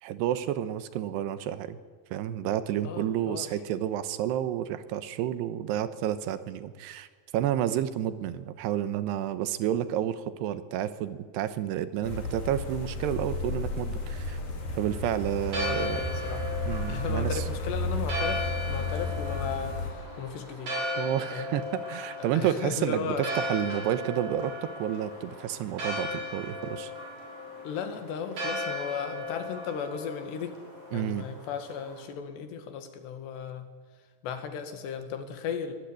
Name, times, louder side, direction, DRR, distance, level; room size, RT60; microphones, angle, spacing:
voice 1, 0.0-1.8 2.1-7.1 7.3-14.4 14.8-16.0 16.7-17.4 21.0-24.5 24.8-26.9 30.9-31.3, right 11 dB, 85° right, 12 dB, 3.2 m, -30 dB
voice 2, 2.8-3.5 15.6-16.4 16.9-20.7 21.3-21.5 22.2-23.3 27.6-30.6 30.9-33.7 34.2-35.7, left 6 dB, 85° left, 7 dB, 4.2 m, -36 dB
sound 1, 12.0-19.9, left 2 dB, 60° left, 5.4 m, -33 dB
Church bell, 15.4-32.0, left 1 dB, 55° right, 7.7 m, -37 dB
22.5 x 18.5 x 9.9 m, 1.5 s
omnidirectional pair, 4.8 m